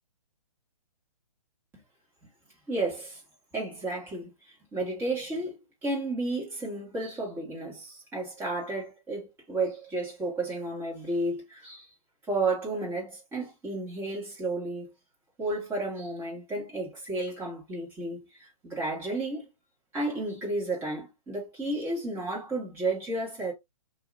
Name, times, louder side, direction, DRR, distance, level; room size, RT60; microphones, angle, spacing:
voice 1, 2.7-3.2 3.5-4.3 4.7-11.9 12.3-14.9 15.4-19.4 19.9-23.5, right 2 dB, 10° right, 1.6 m, -32 dB
2.9 x 2.8 x 2.4 m
hypercardioid pair, 145°, 18 cm